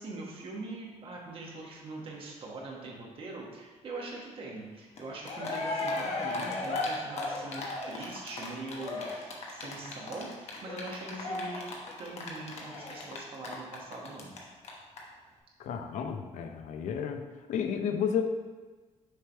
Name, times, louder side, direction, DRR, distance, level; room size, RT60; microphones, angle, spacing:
voice 1, 0.0-11.7 12.0-14.3, right 2 dB, 50° right, -2 dB, 1.3 m, -42 dB
Cheering, 5.0-5.1 5.2-14.4 14.6-14.7 15.0-15.1, left 2 dB, 60° left, 1.1 m, -35 dB
voice 2, 15.6-17.2 17.5-18.2, left 7 dB, 85° left, 6 dB, 0.6 m, -32 dB
6.5 x 3.4 x 4.4 m, 1.3 s
cardioid pair, 150°, 12 cm